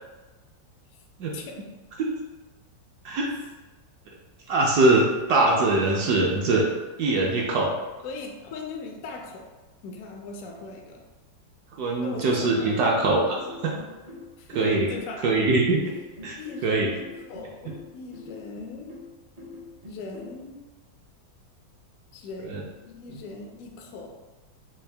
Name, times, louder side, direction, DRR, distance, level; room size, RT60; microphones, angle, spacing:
voice 1, 1.3-1.7 8.0-9.5 9.8-11.0 12.0-12.8 14.4-15.4 16.4-18.9 19.9-20.6 22.1-22.6 22.8-24.1, left 4 dB, 75° left, 1 dB, 0.8 m, -39 dB
voice 2, 4.5-6.7 7.0-7.7 11.8-13.7 14.5-14.9 15.2-15.8 16.2-16.3 16.6-16.9 22.4-22.6 23.1-23.2, right 2 dB, 70° right, -2 dB, 1.0 m, -22 dB
sound 1, 12.1-20.4, left 2 dB, 50° right, 0.6 m, -44 dB
3.7 x 2.3 x 3.3 m, 1.2 s
omnidirectional pair, 2.0 m